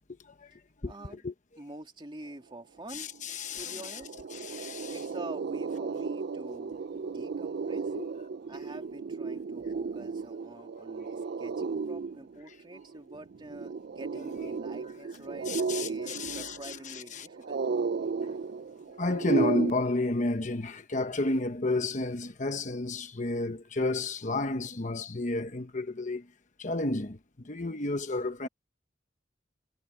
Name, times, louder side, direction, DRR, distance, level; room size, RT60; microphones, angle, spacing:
voice 1, 0.8-1.2 1.6-3.1 3.5-4.1 4.9-7.9 8.5-17.6, right 1 dB, 25° right, 2.6 m, -47 dB
voice 2, 2.9-4.0 4.5-4.9 8.0-8.1 15.5-17.3 19.0-26.2 26.6-27.2 27.4-28.5, left 2 dB, 45° left, 1.1 m, -31 dB
sound 1, 3.1-3.2 3.5-19.7, right 4 dB, 60° right, 0.4 m, -34 dB
head